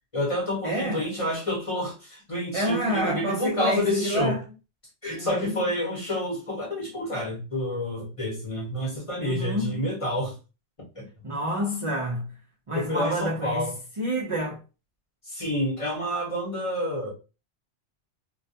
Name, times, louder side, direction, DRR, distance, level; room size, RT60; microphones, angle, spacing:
voice 1, 0.1-4.4 5.0-10.4 10.9-11.1 12.7-13.7 15.3-17.1, left 1 dB, 30° left, 0.8 m, -29 dB
voice 2, 0.6-1.0 2.5-4.4 5.1-5.6 9.2-9.9 11.2-12.4 12.7-13.7 14.0-14.6, equal, 45° right, 0.4 m, -28 dB
2.3 x 2.2 x 2.7 m
omnidirectional pair, 1.2 m